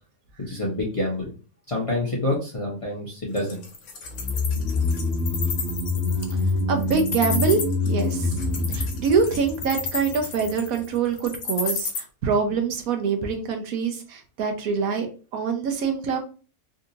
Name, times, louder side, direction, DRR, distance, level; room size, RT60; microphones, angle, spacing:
voice 1, 0.4-1.3 1.7-3.6, left 1 dB, 30° left, -4 dB, 0.7 m, -27 dB
Wild animals, 3.4-12.0, left 4 dB, 75° left, 1.3 m, -31 dB
sound 1, 4.1-10.5 10.8-10.9, left 2 dB, 5° left, 1.2 m, -26 dB
voice 2, 6.7-7.6 7.9-8.3 8.7-15.1 15.3-16.2, right 5 dB, 75° right, 4 dB, 1.1 m, -25 dB
3.7 x 2.7 x 2.6 m, 0.36 s
omnidirectional pair, 1.5 m